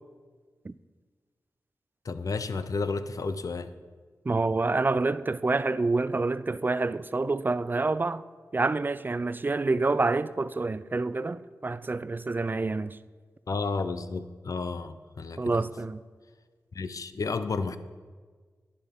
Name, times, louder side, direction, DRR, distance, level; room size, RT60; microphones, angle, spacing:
voice 1, 2.0-3.7 13.5-15.7 16.7-17.8, left 4 dB, 60° left, 0.5 m, -32 dB
voice 2, 4.3-8.2 8.5-13.0 15.4-16.0, right 3 dB, 30° right, 0.3 m, -27 dB
11.0 x 9.8 x 3.6 m
cardioid pair, 55°, 7 cm